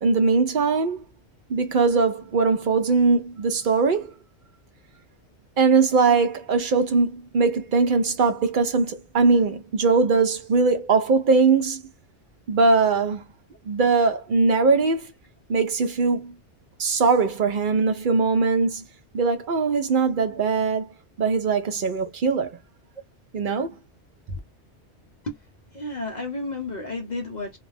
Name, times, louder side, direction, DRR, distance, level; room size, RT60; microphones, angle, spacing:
voice 1, 0.0-1.0 1.5-4.1 5.6-11.8 12.5-13.2 13.7-15.1 15.5-16.3 16.8-18.8 19.1-22.6 23.3-23.7, right 4 dB, 55° right, 0.6 m, -21 dB
voice 2, 25.7-27.6, left 2 dB, 45° left, 0.7 m, -32 dB
2.3 x 2.1 x 3.1 m
omnidirectional pair, 1.2 m